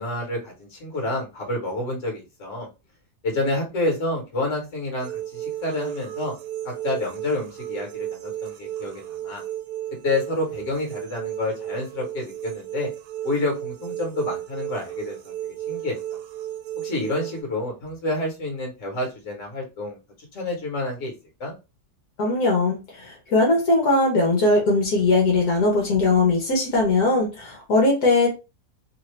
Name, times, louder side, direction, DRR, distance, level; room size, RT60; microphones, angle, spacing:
voice 1, 0.0-2.7 3.2-6.3 6.6-9.4 10.0-12.9 13.2-15.3 15.7-16.0 16.8-20.0 20.3-21.1 21.4-21.5, left 2 dB, 50° left, 1 dB, 1.6 m, -28 dB
sound 1, 5.0-17.4, right 12 dB, 85° right, 1.1 m, -34 dB
voice 2, 22.2-28.3, left 2 dB, 75° left, -2 dB, 1.4 m, -20 dB
3.2 x 2.6 x 3.2 m, 0.28 s
omnidirectional pair, 1.7 m